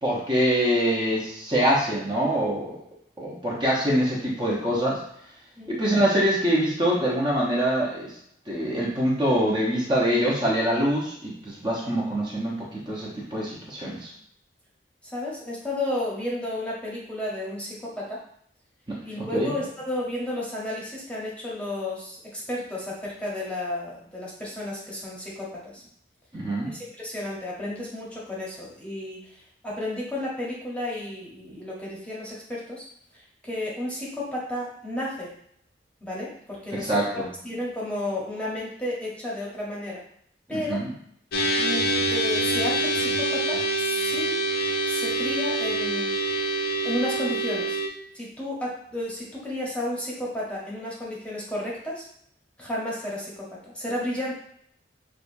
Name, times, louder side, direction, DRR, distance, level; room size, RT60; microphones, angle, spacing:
voice 1, 0.0-2.8 3.2-5.0 5.7-8.1 8.5-14.1 18.9-19.5 26.3-26.7 36.7-37.3 40.5-40.9, equal, 25° right, -5 dB, 0.9 m, -24 dB
voice 2, 15.0-18.2 19.0-25.8 26.7-32.8 33.1-35.3 36.0-40.0 40.5-40.8 41.6-44.3 44.9-46.2 46.8-47.8 48.1-52.0 52.6-54.3, left 1 dB, 5° left, -5 dB, 1.0 m, -32 dB
sound 1, 41.3-47.9, right 1 dB, 60° left, 0.6 m, -25 dB
6.3 x 2.4 x 2.7 m, 0.68 s
head